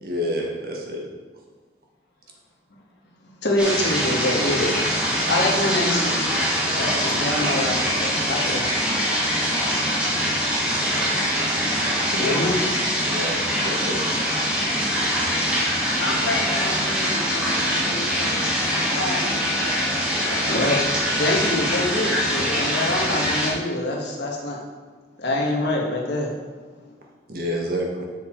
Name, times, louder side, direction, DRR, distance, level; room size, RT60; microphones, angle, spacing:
voice 1, 0.0-1.0 12.1-12.4 13.0-13.4 13.6-14.0 27.3-28.0, equal, 50° right, -1 dB, 1.4 m, -28 dB
voice 2, 3.4-4.8 5.3-6.2 6.8-8.6 12.2-12.6 20.5-20.8 21.2-24.6 25.2-26.3, left 1 dB, 70° left, -1 dB, 1.6 m, -25 dB
sound 1, 3.6-23.5, equal, 5° right, 1.3 m, -23 dB
voice 3, 16.0-18.4 19.0-19.9 20.1-20.5, left 2 dB, 90° left, 1 dB, 1.3 m, -32 dB
7.0 x 6.4 x 4.6 m, 1.4 s
head